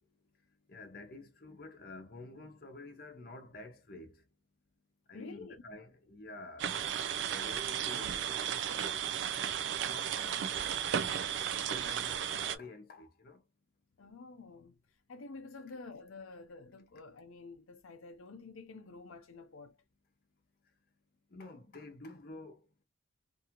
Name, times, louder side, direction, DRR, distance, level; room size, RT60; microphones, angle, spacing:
voice 1, 0.7-4.2 5.1-6.8 7.2-9.6 9.9-10.7 11.7-13.4 21.3-22.8, left 2 dB, 45° left, 0.8 m, -50 dB
voice 2, 5.1-5.6 14.0-14.8 15.1-19.8, left 3 dB, 85° left, 0.6 m, -49 dB
sound 1, 6.6-12.6, right 9 dB, 60° right, 0.3 m, -34 dB
2.7 x 2.4 x 2.9 m
head